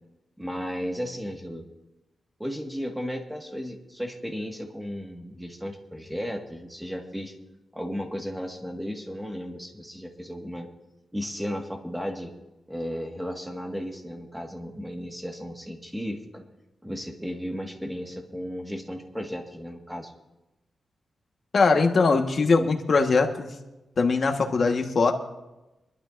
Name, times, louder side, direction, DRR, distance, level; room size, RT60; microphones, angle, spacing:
voice 1, 0.4-1.7 2.4-7.3 7.7-10.7 11.1-12.3 12.7-16.4 16.8-20.1, equal, 5° right, 3 dB, 1.7 m, -34 dB
voice 2, 21.5-23.5 24.0-25.1, left 4 dB, 50° left, 4 dB, 1.4 m, -21 dB
25.0 x 12.0 x 2.6 m, 1.0 s
wide cardioid pair, 115°, 0 cm